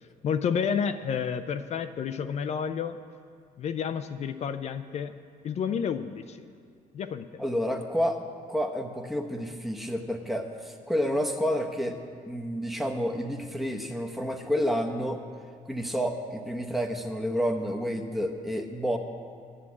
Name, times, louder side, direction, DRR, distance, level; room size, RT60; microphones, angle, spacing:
voice 1, 0.2-3.0 3.6-5.1 5.4-6.4 6.9-7.4, left 7 dB, 50° left, 10 dB, 0.4 m, -30 dB
voice 2, 7.4-8.2 8.5-12.0 12.3-15.2 15.7-19.0, equal, ahead, 3 dB, 0.9 m, -29 dB
9.8 x 7.4 x 8.3 m, 2.1 s
cardioid pair, 110°, 15 cm